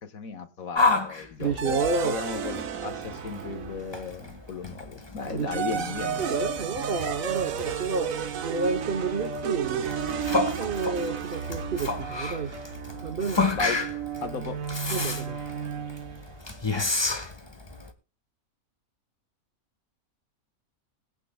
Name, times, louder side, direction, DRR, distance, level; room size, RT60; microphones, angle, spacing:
voice 1, 0.0-6.2 13.5-13.8 14.2-14.6, left 5 dB, 70° left, 1.7 m, -35 dB
Yell, 0.7-17.9, left 3 dB, 20° left, 1.3 m, -32 dB
voice 2, 1.4-2.2 5.3-5.5 6.2-9.9 10.6-12.5 13.0-13.5 14.9-15.4, right 4 dB, 45° right, 1.0 m, -30 dB
sound 1, 1.6-4.1 5.2-16.3, right 7 dB, 65° right, 1.3 m, -33 dB
21.0 x 9.1 x 2.2 m
omnidirectional pair, 1.6 m